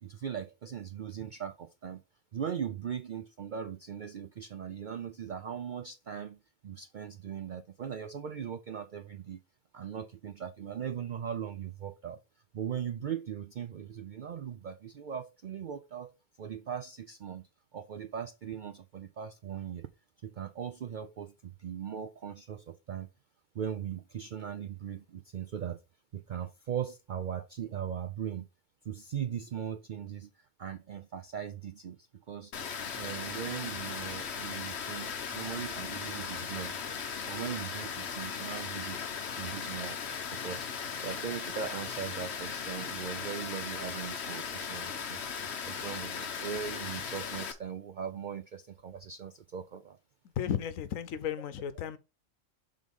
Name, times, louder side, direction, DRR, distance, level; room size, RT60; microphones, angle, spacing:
voice 1, 0.0-2.0 2.3-9.4 9.7-12.2 12.5-16.1 16.4-17.4 17.7-19.9 20.2-23.1 23.5-25.8 26.1-28.5 28.8-32.5 32.9-36.8 37.3-39.0 39.4-40.0 40.3-45.2 45.7-50.0, right 8 dB, 70° right, 0.4 m, -39 dB
Water, 32.5-47.5, left 6 dB, 60° left, 1.1 m, -38 dB
voice 2, 50.4-52.0, left 9 dB, 85° left, 1.1 m, -34 dB
6.2 x 3.7 x 5.3 m
omnidirectional pair, 1.4 m